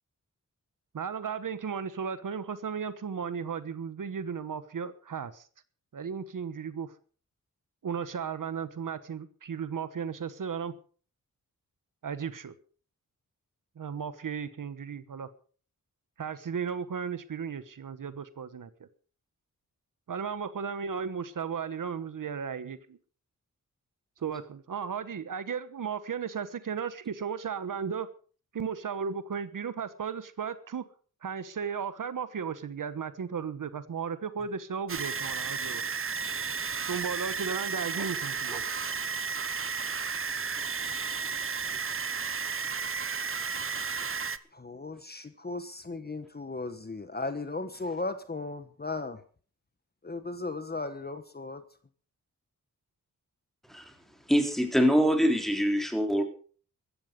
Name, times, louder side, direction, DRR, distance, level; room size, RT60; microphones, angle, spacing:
voice 1, 0.9-5.5 5.9-6.9 7.8-10.7 12.0-12.5 13.8-15.3 16.2-18.9 20.1-23.0 24.2-28.1 28.5-30.8 31.2-35.8 36.9-38.6, right 6 dB, 70° right, 13 dB, 1.2 m, -35 dB
sound 1, 34.9-44.4, right 5 dB, 40° right, 0.9 m, -33 dB
voice 2, 44.5-49.2 50.0-51.6, left 3 dB, 30° left, 10 dB, 1.3 m, -36 dB
voice 3, 54.3-56.2, equal, ahead, 5 dB, 3.9 m, -24 dB
15.5 x 13.5 x 5.3 m, 0.42 s
wide cardioid pair, 85°, 33 cm